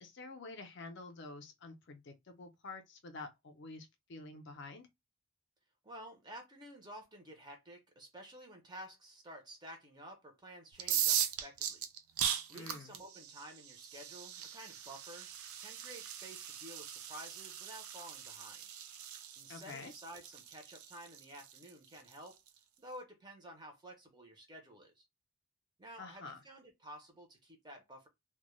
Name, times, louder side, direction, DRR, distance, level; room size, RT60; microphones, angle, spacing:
voice 1, 0.0-4.9 12.5-12.9 19.5-19.9 26.0-26.4, left 3 dB, 50° left, 0.4 m, -48 dB
voice 2, 5.8-11.8 12.5-15.3 15.6-18.7 19.4-22.4 22.8-25.1 25.8-28.1, right 1 dB, 20° right, 0.5 m, -52 dB
sound 1, 10.7-22.5, right 9 dB, 75° right, 0.4 m, -39 dB
2.1 x 2.0 x 3.0 m
head